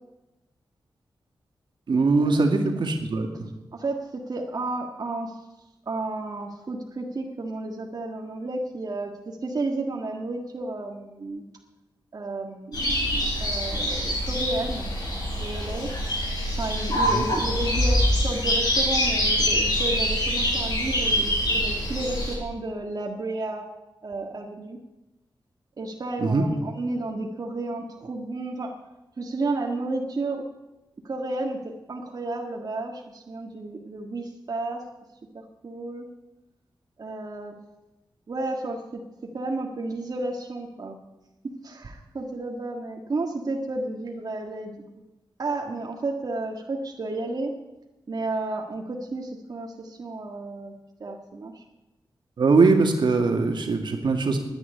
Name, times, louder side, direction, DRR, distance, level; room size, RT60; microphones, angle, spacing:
voice 1, 1.9-3.3 17.1-17.2 26.2-26.5 52.4-54.4, right 3 dB, 75° right, 4 dB, 2.1 m, -21 dB
voice 2, 4.3-5.4 5.8-11.4 12.1-14.9 15.3-15.9 16.6-23.7 24.0-24.8 25.8-28.7 29.2-30.4 31.0-34.8 35.3-36.1 37.0-37.6 38.3-39.0 39.3-41.0 41.6-44.8 45.4-47.5 48.1-50.7 51.0-51.6, right 2 dB, 55° right, 1 dB, 1.7 m, -32 dB
sound 1, 12.7-22.3, equal, 60° left, 7.3 m, -25 dB
10.5 x 10.0 x 9.6 m, 1.0 s
wide cardioid pair, 90°, 8 cm